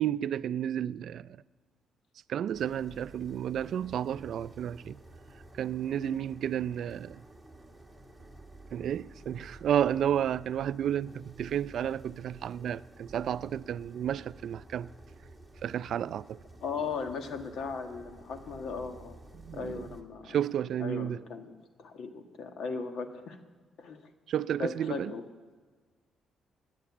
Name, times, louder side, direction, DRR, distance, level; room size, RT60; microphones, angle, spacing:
voice 1, 0.0-1.4 2.3-5.0 5.5-7.2 8.7-14.9 15.6-16.4 19.4-19.9 20.3-21.2 24.3-25.1, right 10 dB, 65° right, 0.4 m, -32 dB
sound 1, 2.5-20.0, right 2 dB, 5° right, 1.8 m, -52 dB
voice 2, 16.6-19.2 19.5-20.4 20.8-21.5 21.8-23.4 23.8-24.0 24.6-25.2, left 5 dB, 70° left, 1.6 m, -37 dB
17.5 x 10.0 x 7.2 m
cardioid pair, 90°, 0 cm